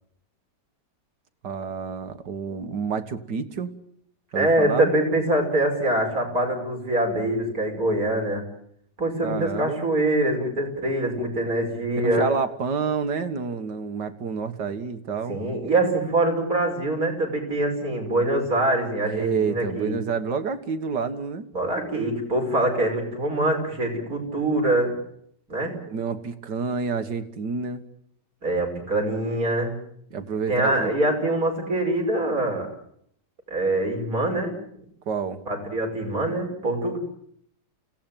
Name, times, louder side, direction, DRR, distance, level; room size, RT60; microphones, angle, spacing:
voice 1, 1.4-3.8 4.3-4.9 9.2-9.8 12.0-15.4 19.0-21.5 25.9-27.8 30.1-31.0 35.1-35.4, right 5 dB, 75° right, 9 dB, 2.1 m, -29 dB
voice 2, 4.3-8.4 9.0-12.3 15.3-19.9 21.5-25.0 25.5-25.7 28.4-29.8 30.5-32.7 33.5-34.6 35.5-37.0, right 1 dB, 55° right, 3 dB, 5.9 m, -24 dB
28.5 x 17.5 x 9.0 m, 0.70 s
omnidirectional pair, 1.9 m